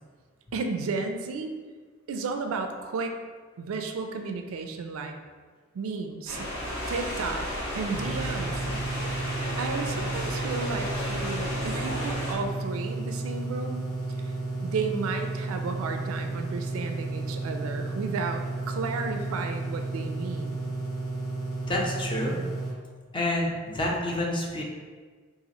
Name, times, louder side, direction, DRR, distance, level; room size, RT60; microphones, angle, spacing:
voice 1, 0.5-1.5 2.1-3.1 3.6-5.1 5.7-6.5 6.9-7.5 7.7-8.7 9.6-13.8 14.2-14.3 14.6-20.6, right 4 dB, 90° right, 5 dB, 0.4 m, -33 dB
sound 1, 6.3-12.3, equal, 55° left, 1.2 m, -33 dB
sound 2, 7.9-22.7, right 2 dB, 75° left, 1.0 m, -33 dB
voice 2, 21.7-22.4 23.1-24.6, left 1 dB, 25° left, -2 dB, 0.6 m, -28 dB
2.9 x 2.5 x 3.9 m, 1.5 s
head